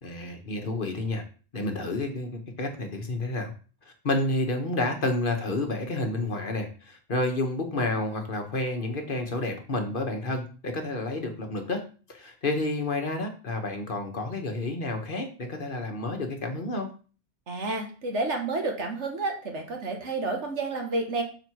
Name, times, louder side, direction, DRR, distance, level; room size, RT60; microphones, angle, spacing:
voice 1, 0.0-1.2 1.5-3.5 4.0-11.8 12.1-16.9, left 2 dB, 50° left, 4 dB, 1.4 m, -30 dB
voice 2, 17.5-21.2, right 3 dB, 90° right, 2 dB, 2.0 m, -30 dB
7.0 x 5.1 x 4.6 m, 0.38 s
omnidirectional pair, 1.2 m